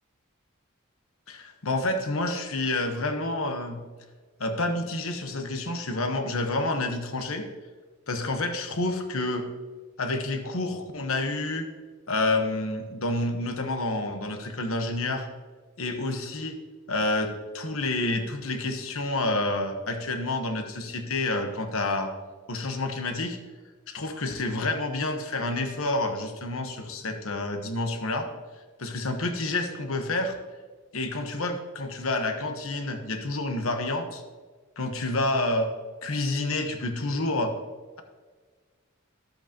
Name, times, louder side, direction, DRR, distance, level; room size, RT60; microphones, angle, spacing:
voice 1, 1.3-3.8 4.4-7.5 8.1-9.5 10.0-11.7 12.1-15.3 15.8-16.6 16.9-22.1 22.5-23.4 23.9-28.3 28.8-30.3 30.9-34.2 34.8-35.7 36.0-37.5, left 2 dB, 75° left, 6 dB, 1.1 m, -29 dB
13.0 x 7.9 x 2.9 m, 1.4 s
head